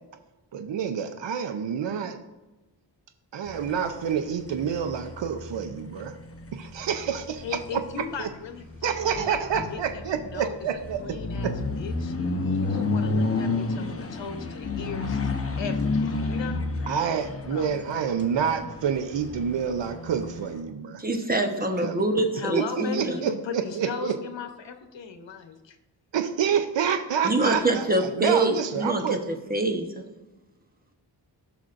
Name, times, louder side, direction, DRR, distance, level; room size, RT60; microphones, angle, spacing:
voice 1, 0.5-2.2 3.3-6.1 6.5-7.8 8.2-8.3 8.8-11.0 11.4-11.5 16.9-21.0 21.5-22.0 22.5-24.1 26.1-29.2, right 7 dB, 80° right, 7 dB, 0.7 m, -28 dB
sound 1, 3.4-20.6, left 3 dB, 30° left, 0.9 m, -31 dB
voice 2, 7.4-9.4 9.7-10.6 11.0-12.1 12.6-16.7 17.5-17.7 22.3-25.8, left 5 dB, 85° left, 6 dB, 1.0 m, -37 dB
voice 3, 21.0-23.2 27.2-29.2 29.5-30.1, right 2 dB, 20° right, 4 dB, 1.0 m, -25 dB
16.0 x 6.1 x 2.6 m, 1.1 s
wide cardioid pair, 105°, 43 cm